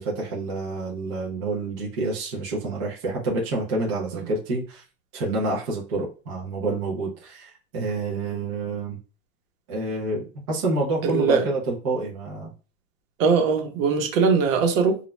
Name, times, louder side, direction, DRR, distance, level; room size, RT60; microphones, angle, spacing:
voice 1, 0.0-4.8 5.1-9.0 9.7-12.5, right 2 dB, 25° right, 0.4 m, -28 dB
voice 2, 11.0-11.4 13.2-15.1, right 5 dB, 60° right, 0.9 m, -21 dB
2.4 x 2.0 x 3.0 m
supercardioid pair, 155°, 44 cm